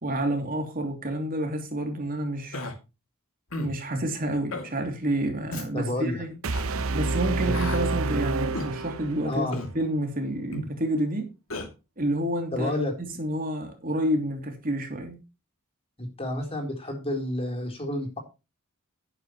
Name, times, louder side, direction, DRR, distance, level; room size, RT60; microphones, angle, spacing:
voice 1, 0.0-2.6 3.6-6.3 6.9-9.5 9.7-11.3 12.0-12.7 13.2-15.2, right 1 dB, 45° right, 3.0 m, -29 dB
Human voice, 2.5-2.7 3.5-3.8 4.5-4.7 5.5-5.7 6.5-6.7 7.5-7.8 8.5-8.7 9.5-9.7 10.5-10.7 11.5-11.7, left 1 dB, 80° left, 2.7 m, -33 dB
voice 2, 5.7-6.2 7.4-7.5 9.2-9.6 12.5-13.2 16.0-18.2, left 1 dB, 30° left, 3.8 m, -30 dB
sound 1, 6.4-9.5, right 3 dB, 80° right, 0.8 m, -28 dB
11.5 x 11.0 x 3.1 m
head